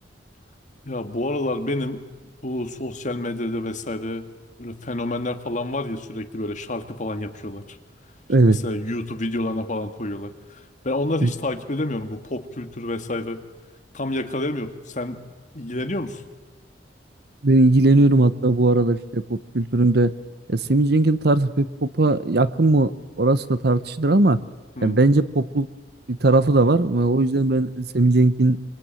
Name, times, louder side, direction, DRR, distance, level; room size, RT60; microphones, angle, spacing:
voice 1, 0.8-2.0 2.4-4.3 4.6-7.8 8.4-13.4 13.9-15.3 15.5-16.2 24.8-25.0, left 1 dB, 45° left, 7 dB, 2.0 m, -29 dB
voice 2, 17.4-20.1 20.5-22.9 23.2-24.4 24.8-25.7 26.1-28.6, right 2 dB, 60° right, 15 dB, 1.0 m, -18 dB
25.5 x 24.5 x 9.1 m, 1.2 s
head